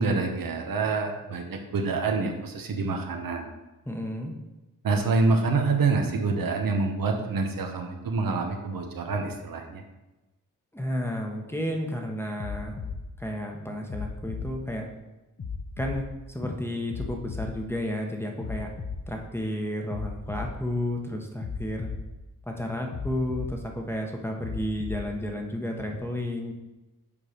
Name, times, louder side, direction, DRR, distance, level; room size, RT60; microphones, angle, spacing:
voice 1, 0.0-3.5 4.8-9.8, right 3 dB, 75° right, 3 dB, 1.1 m, -26 dB
voice 2, 3.8-4.3 10.7-12.8 13.2-14.9 15.8-18.7 19.1-21.9 22.5-26.5, left 1 dB, 5° left, 2 dB, 1.1 m, -32 dB
sound 1, 12.4-13.0 13.9-14.5 15.4-16.0 16.9-17.5 18.4-19.0 19.9-20.5 21.4-22.0 22.9-23.5 24.4-25.0 25.9-26.0, left 5 dB, 45° left, 1.0 m, -34 dB
7.1 x 4.8 x 5.1 m, 1.1 s
cardioid pair, 90°, 34 cm